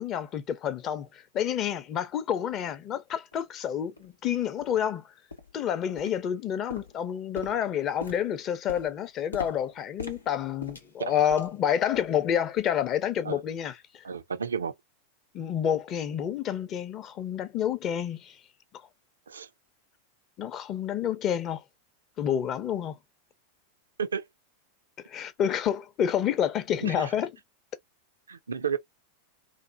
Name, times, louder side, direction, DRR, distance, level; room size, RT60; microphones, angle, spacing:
voice 1, 0.0-5.1 5.5-14.0 15.3-18.4 20.4-21.6 22.2-23.0 25.1-27.3, left 9 dB, 30° left, 0.6 m, -29 dB
sound 1, 3.3-3.4 4.0-4.1 4.6-4.8 5.3-5.6 6.0-6.4 6.7-11.6 11.9-12.2 12.6-12.8 13.3-13.4, left 3 dB, 80° left, 0.7 m, -42 dB
voice 2, 14.0-14.7 19.3-19.5 24.0-24.2 26.8-27.1 28.3-28.8, right 7 dB, 70° right, 0.4 m, -32 dB
3.0 x 2.1 x 2.5 m
figure-of-eight pair, 90°, 0 cm